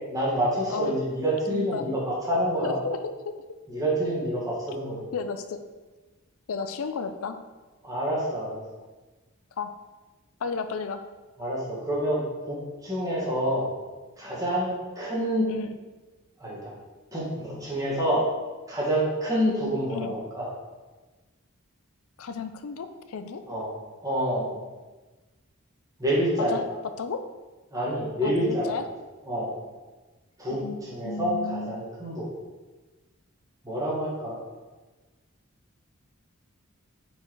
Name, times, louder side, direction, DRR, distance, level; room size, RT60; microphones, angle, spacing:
voice 1, 0.1-2.8 3.7-5.0 7.8-8.6 11.4-12.2 12.5-13.7 14.2-15.5 16.4-16.7 17.1-18.2 18.7-20.5 23.5-23.7 24.0-24.6 26.0-26.6 27.7-28.8 29.2-29.5 30.4-32.3 33.6-34.4, equal, 15° right, -6 dB, 1.6 m, -27 dB
voice 2, 1.5-1.9 2.6-3.0 3.2-3.3 5.1-5.6 6.5-7.4 9.6-9.7 10.4-11.0 15.5-15.8 19.9-20.1 22.2-23.4 26.5-26.6 27.0-27.2 28.2-28.8 30.5-31.8, left 5 dB, 80° left, 9 dB, 0.4 m, -33 dB
5.3 x 4.6 x 4.6 m, 1.2 s
head